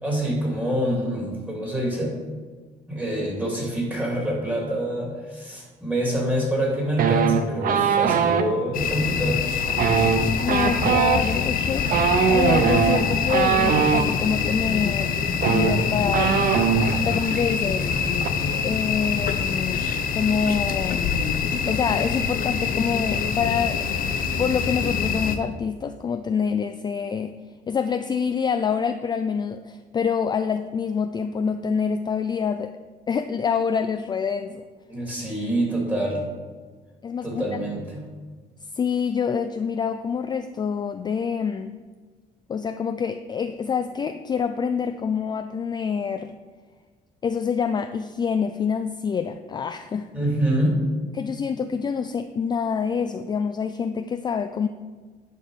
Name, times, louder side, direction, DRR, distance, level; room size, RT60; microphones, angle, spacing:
voice 1, 0.0-2.2 2.9-9.4 34.9-36.3 37.2-38.0 50.1-50.9, right 1 dB, 10° right, -2 dB, 2.8 m, -26 dB
sound 1, 7.0-8.5 9.7-14.1 15.0-15.1 15.3-17.0 17.3-17.5 17.8-18.3, right 7 dB, 55° right, 0.7 m, -21 dB
sound 2, 8.7-25.4, left 6 dB, 55° left, 0.7 m, -25 dB
voice 2, 10.4-11.9 12.3-16.3 17.1-17.9 18.6-21.1 21.7-24.0 24.4-27.3 27.7-32.7 33.1-34.6 37.0-37.6 38.7-41.8 42.5-46.3 47.2-50.1 51.1-54.7, left 6 dB, 25° left, 9 dB, 0.3 m, -26 dB
10.5 x 4.6 x 5.0 m, 1.4 s
cardioid pair, 110°, 17 cm